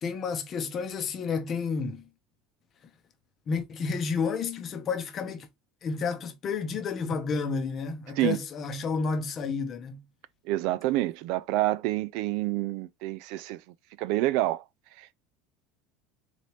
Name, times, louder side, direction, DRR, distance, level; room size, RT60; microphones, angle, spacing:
voice 1, 0.0-2.1 3.5-5.5 5.8-10.0, left 5 dB, 25° left, 0.8 m, -31 dB
voice 2, 10.5-13.6 14.0-14.6 15.0-15.1, right 16 dB, 55° right, 0.3 m, -28 dB
4.1 x 3.3 x 2.9 m
cardioid pair, 175°, 0 cm